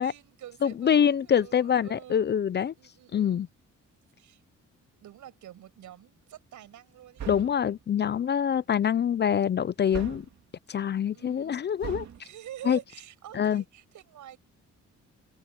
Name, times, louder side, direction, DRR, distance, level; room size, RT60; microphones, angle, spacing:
voice 1, 0.0-2.3 2.8-3.5 4.2-4.4 5.0-7.3 11.1-11.7 12.1-14.4, right 12 dB, 85° right, 7.9 m, -47 dB
voice 2, 0.6-2.7 3.1-3.5 7.3-10.3 10.7-12.1 12.7-12.8 13.3-13.6, left 8 dB, 35° left, 0.4 m, -25 dB
sound 1, 7.2-7.7 9.9-10.4 11.8-12.2, right 9 dB, 65° right, 3.1 m, -38 dB
cardioid pair, 105°, 29 cm